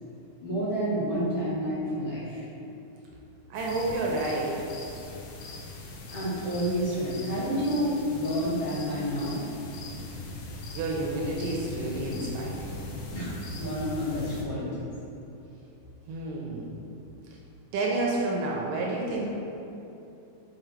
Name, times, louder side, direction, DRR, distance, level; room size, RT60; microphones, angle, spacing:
voice 1, 0.4-2.4 6.1-9.4 13.1-13.3 13.6-14.9, equal, 55° left, -10 dB, 2.0 m, -29 dB
sound 1, 3.5-14.4, left 2 dB, 80° left, 2.5 m, -40 dB
voice 2, 3.5-4.6 10.7-12.8 16.1-16.7 17.7-19.4, right 2 dB, 80° right, -2 dB, 2.2 m, -30 dB
6.1 x 5.2 x 3.2 m, 2.8 s
omnidirectional pair, 4.0 m